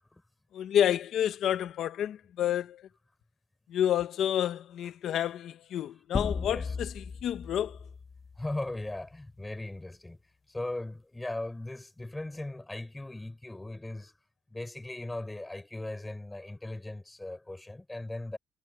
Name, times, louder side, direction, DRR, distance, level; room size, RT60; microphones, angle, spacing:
voice 1, 0.5-2.8 3.7-7.8, left 10 dB, 75° left, 1.4 m, -29 dB
sound 1, 6.1-9.0, left 5 dB, 40° left, 3.2 m, -36 dB
voice 2, 6.4-6.7 8.4-10.2 10.5-14.1 14.5-18.4, left 2 dB, 15° left, 6.6 m, -38 dB
cardioid pair, 90°, 0 cm